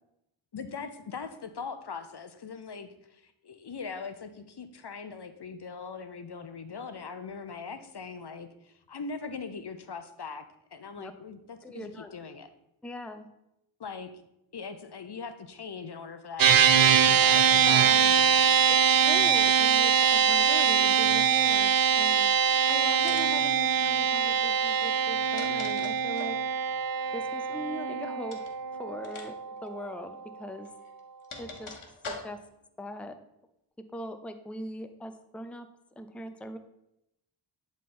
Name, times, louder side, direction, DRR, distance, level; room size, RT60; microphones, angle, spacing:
voice 1, 0.5-10.4 10.7-12.5 13.8-14.1 14.5-16.8 17.1-18.8, left 5 dB, 55° left, 10 dB, 0.8 m, -41 dB
voice 2, 11.6-12.1 12.8-13.3 17.6-18.0 18.7-18.8 19.0-22.3 22.7-26.4 27.1-28.4 28.8-29.3 29.6-30.7 31.4-31.7 32.1-32.4 32.8-33.2 33.9-35.7 36.0-36.6, left 1 dB, 5° left, 8 dB, 0.6 m, -40 dB
sound 1, 16.4-29.9, right 8 dB, 45° right, 0.5 m, -23 dB
sound 2, 22.3-22.7 23.0-23.5 24.9-26.4 28.2-28.5 29.0-29.3 29.6-29.7 30.6-32.6, left 3 dB, 75° left, 1.2 m, -43 dB
10.5 x 3.7 x 4.3 m, 0.82 s
cardioid pair, 40°, 49 cm